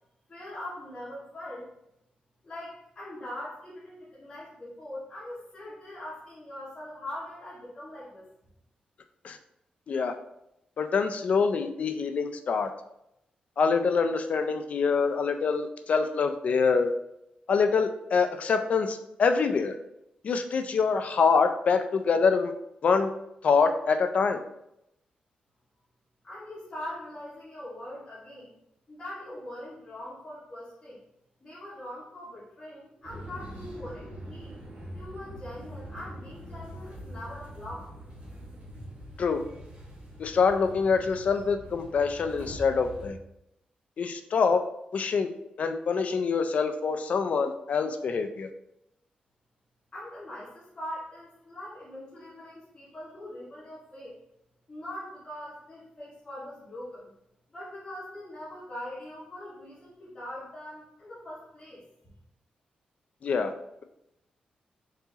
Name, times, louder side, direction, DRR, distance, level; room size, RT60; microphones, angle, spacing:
voice 1, 0.3-1.7 2.4-8.2 26.2-28.5 28.9-31.0 31.4-34.5 34.9-37.9 49.9-54.2 54.7-57.1 57.5-61.8, left 1 dB, 30° left, -12 dB, 1.6 m, -42 dB
voice 2, 10.8-12.7 13.6-16.9 17.5-19.7 20.2-22.5 22.8-23.1 23.4-24.4 39.2-39.4 40.2-43.2 44.0-44.6 44.9-45.3 45.6-48.5 63.2-63.5, left 5 dB, 50° left, 7 dB, 0.4 m, -25 dB
sound 1, 33.0-43.1, equal, 50° right, 1.7 m, -43 dB
4.5 x 4.0 x 2.9 m, 0.82 s
wide cardioid pair, 135°, 3 cm